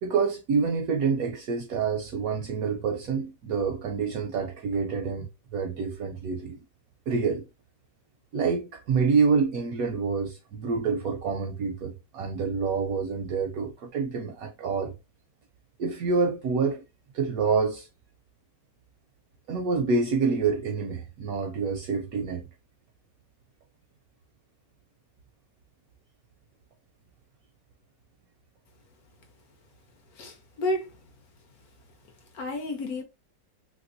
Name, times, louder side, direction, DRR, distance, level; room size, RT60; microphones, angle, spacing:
voice 1, 0.0-6.6 7.1-7.5 8.3-14.9 15.8-16.8 17.1-17.9 19.5-22.4, right 5 dB, 70° right, 0.8 m, -27 dB
voice 2, 30.2-30.9 32.3-33.0, left 1 dB, 65° left, 1.0 m, -31 dB
3.2 x 2.9 x 2.5 m
omnidirectional pair, 1.9 m